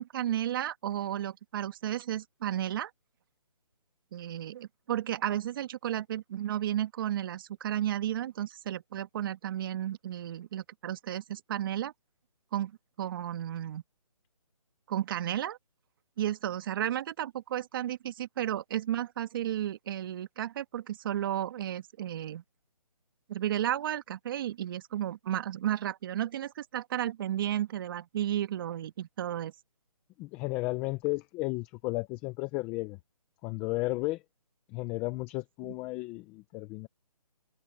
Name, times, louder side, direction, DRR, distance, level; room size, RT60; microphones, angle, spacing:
voice 1, 0.0-2.9 4.1-11.9 12.5-12.7 13.0-13.8 14.9-15.6 16.2-22.4 23.3-29.5, right 11 dB, 35° right, 1.7 m, -33 dB
voice 2, 30.2-33.0 33.4-34.2 34.7-36.9, left 21 dB, 10° left, 0.5 m, -33 dB
hypercardioid pair, 155°, 20 cm